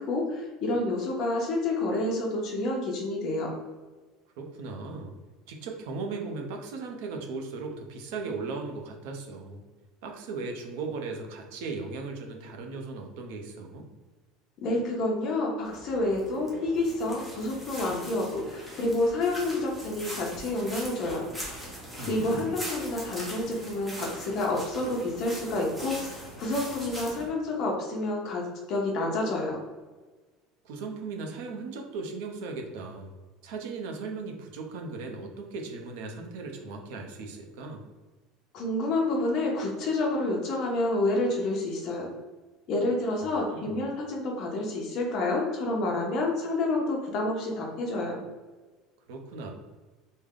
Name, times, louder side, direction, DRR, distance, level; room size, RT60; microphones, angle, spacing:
voice 1, 0.0-3.5 14.6-21.2 22.1-29.6 38.5-42.1 42.7-48.2, left 2 dB, 35° left, 0 dB, 0.7 m, -29 dB
voice 2, 4.4-5.1 5.5-9.6 10.0-13.9 22.0-22.6 30.6-33.1 33.4-37.8 43.2-43.8 49.1-49.5, right 4 dB, 65° right, 2 dB, 0.6 m, -37 dB
sound 1, 15.6-27.3, equal, ahead, 0.7 m, -41 dB
3.4 x 2.1 x 3.7 m, 1.3 s
cardioid pair, 180°, 0 cm